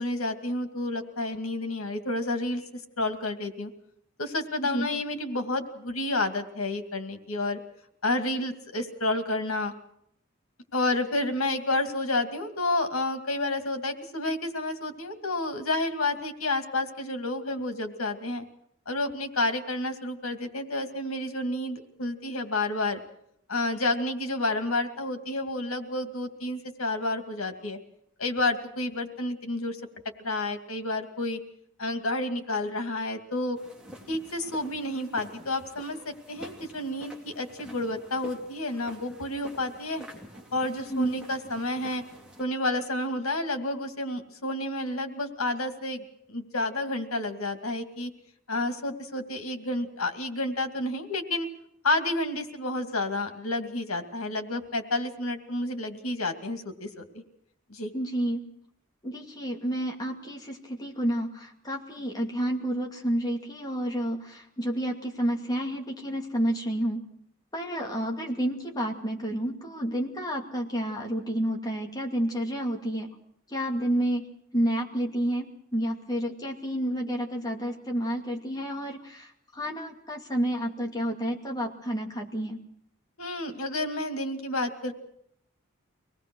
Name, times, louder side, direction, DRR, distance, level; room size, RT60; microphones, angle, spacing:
voice 1, 0.0-2.6 3.0-3.7 4.2-7.6 8.0-9.7 10.7-18.4 18.9-23.0 23.5-27.8 28.2-29.8 30.2-31.4 31.8-33.6 34.1-40.1 40.5-42.0 42.4-48.1 48.5-51.5 51.8-57.2 57.7-57.9 83.2-84.9, left 2 dB, 90° left, 7 dB, 2.5 m, -30 dB
sound 1, 33.5-42.4, right 1 dB, 5° right, 3.2 m, -48 dB
voice 2, 57.9-58.4 59.0-67.1 67.5-73.1 73.5-74.3 74.5-75.5 75.7-82.6, right 1 dB, 20° left, 1 dB, 2.5 m, -30 dB
24.5 x 19.0 x 6.3 m, 0.70 s
head